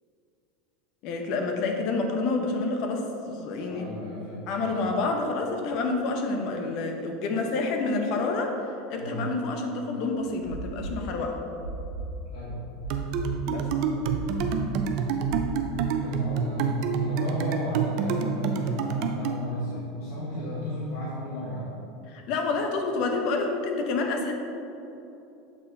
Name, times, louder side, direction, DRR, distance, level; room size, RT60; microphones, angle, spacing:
voice 1, 1.0-3.9 4.5-8.5 8.9-11.4 13.5-13.7 22.1-24.3, left 3 dB, 50° left, 3 dB, 0.8 m, -28 dB
voice 2, 3.7-4.9 8.9-9.3 12.2-12.6 15.9-21.7, equal, 85° left, -7 dB, 1.3 m, -34 dB
sound 1, 10.4-13.4 13.7-15.6, right 3 dB, 20° left, 1.5 m, -37 dB
sound 2, 12.9-19.4, right 6 dB, 55° right, 0.5 m, -28 dB
7.4 x 4.3 x 3.8 m, 2.8 s
supercardioid pair, 145°, 0 cm